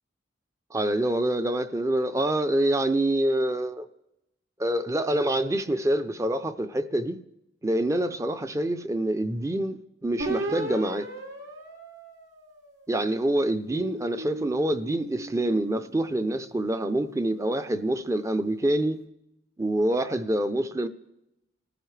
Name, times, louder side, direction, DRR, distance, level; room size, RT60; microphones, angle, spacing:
voice 1, 0.7-3.9 4.6-7.2 7.6-11.1 12.9-19.0 19.6-20.9, right 1 dB, 15° right, 0.5 m, -26 dB
sound 1, 10.2-12.9 13.5-16.0, right 2 dB, 75° right, 2.9 m, -36 dB
30.0 x 15.0 x 3.3 m
head